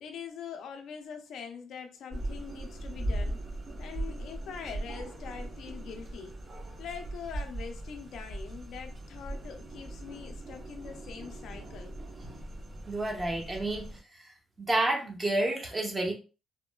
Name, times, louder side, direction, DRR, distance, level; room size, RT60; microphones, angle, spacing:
voice 1, 0.0-3.4 3.8-6.4 6.8-11.9, left 6 dB, 75° left, 0.4 m, -43 dB
sound 1, 2.1-14.0, right 1 dB, 55° right, 1.1 m, -39 dB
voice 2, 12.9-16.1, right 2 dB, 25° right, 0.8 m, -30 dB
3.0 x 2.1 x 2.2 m
cardioid pair, 90°, 0 cm